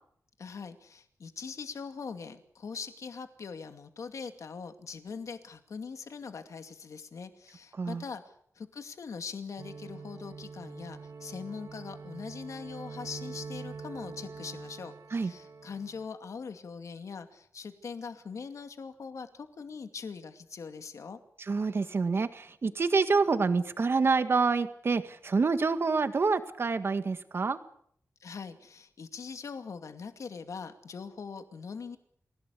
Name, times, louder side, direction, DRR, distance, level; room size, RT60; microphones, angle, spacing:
voice 1, 0.4-8.2 8.6-21.2 28.2-32.0, left 5 dB, 65° left, 7 dB, 2.4 m, -42 dB
sound 1, 9.6-16.1, right 5 dB, 65° right, 2.3 m, -44 dB
voice 2, 21.5-27.6, right 4 dB, 45° right, 9 dB, 1.8 m, -27 dB
28.5 x 17.5 x 8.4 m, 0.66 s
wide cardioid pair, 150°, 6 cm